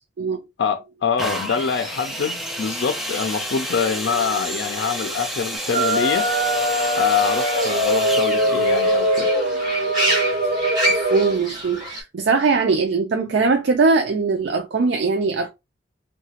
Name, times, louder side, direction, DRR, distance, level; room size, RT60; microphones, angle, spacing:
voice 1, 0.6-6.3 7.0-9.3, left 6 dB, 90° left, 0.4 m, -25 dB
sound 1, 1.2-10.9 11.6-11.7, equal, ahead, 0.4 m, -31 dB
Fowl / Bird, 5.6-12.0, equal, 25° right, 1.5 m, -29 dB
sound 2, 5.7-11.3, equal, 60° right, 1.1 m, -21 dB
voice 2, 11.1-15.5, right 4 dB, 85° right, 0.4 m, -20 dB
2.8 x 2.2 x 2.8 m
head